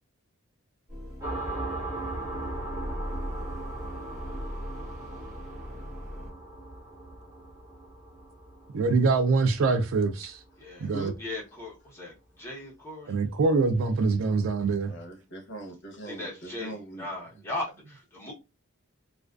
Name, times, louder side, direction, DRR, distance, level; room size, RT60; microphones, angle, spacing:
sound 1, 0.9-6.3, equal, 40° right, 1.1 m, -39 dB
sound 2, 1.2-10.5, right 2 dB, 15° right, 1.2 m, -38 dB
voice 1, 8.7-10.3 10.8-11.1 13.1-14.9, right 4 dB, 65° right, 0.4 m, -24 dB
voice 2, 10.6-10.9 11.2-13.2 16.1-18.3, left 2 dB, 10° left, 0.8 m, -38 dB
voice 3, 14.8-17.0, right 1 dB, 55° left, 0.7 m, -40 dB
2.4 x 2.3 x 2.3 m
head